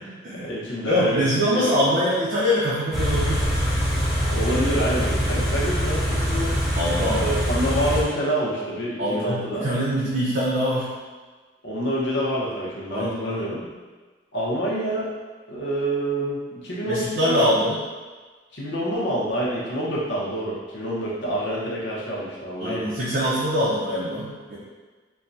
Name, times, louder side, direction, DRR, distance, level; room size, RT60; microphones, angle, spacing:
voice 1, 0.0-1.9 4.3-6.6 7.1-9.7 11.6-13.7 14.3-15.1 15.5-17.5 18.5-22.9, equal, 75° left, -6 dB, 0.9 m, -27 dB
voice 2, 0.8-3.5 6.8-7.3 9.0-10.9 12.9-13.4 16.9-17.8 22.6-24.6, equal, 50° right, -9 dB, 0.7 m, -23 dB
Car / Idling, 2.9-8.0, equal, ahead, 0.6 m, -24 dB
4.5 x 2.3 x 2.6 m, 1.4 s
head